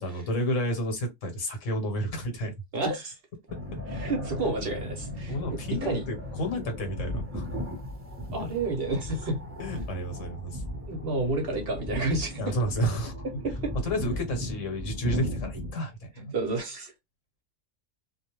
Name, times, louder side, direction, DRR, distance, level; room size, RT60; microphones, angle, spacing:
voice 1, 0.0-2.5 5.3-7.4 9.6-10.6 12.4-13.1 13.8-16.3, equal, 70° left, 1.2 m, -31 dB
voice 2, 2.7-3.2 3.9-6.0 8.3-9.4 10.9-12.6 13.2-13.7 16.2-16.9, right 2 dB, 55° right, 0.8 m, -30 dB
sound 1, 3.5-15.7, left 1 dB, 15° right, 0.6 m, -36 dB
2.4 x 2.1 x 2.9 m
omnidirectional pair, 1.4 m